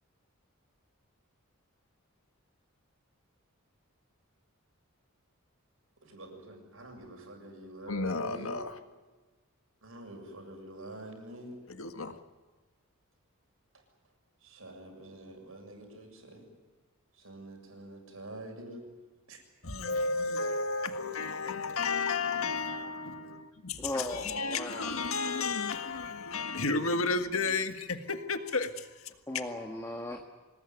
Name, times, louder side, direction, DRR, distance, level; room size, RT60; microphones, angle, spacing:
voice 1, 6.0-8.6 9.8-11.6 13.7-13.8 14.4-16.5 17.1-18.8 19.3-19.4, right 1 dB, 70° right, 7.1 m, -46 dB
voice 2, 7.9-8.8 11.7-12.2 19.6-29.5, left 4 dB, 70° left, 1.7 m, -32 dB
voice 3, 23.8-24.8 29.3-30.2, left 1 dB, 15° left, 1.6 m, -37 dB
26.0 x 20.0 x 9.5 m
head